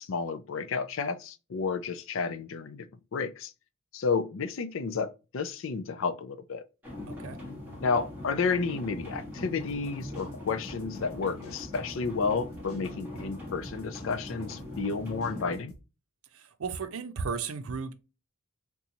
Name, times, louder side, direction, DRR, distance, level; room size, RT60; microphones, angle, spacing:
voice 1, 0.0-2.9 3.1-3.5 3.9-6.6 7.8-15.7, left 4 dB, 65° left, 0.4 m, -31 dB
sound 1, 6.8-15.6, left 1 dB, 10° right, 1.6 m, -41 dB
voice 2, 7.1-7.4 16.3-17.9, right 5 dB, 85° right, 0.5 m, -35 dB
sound 2, 9.6-15.8, equal, 90° left, 1.0 m, -51 dB
3.9 x 2.3 x 2.8 m
head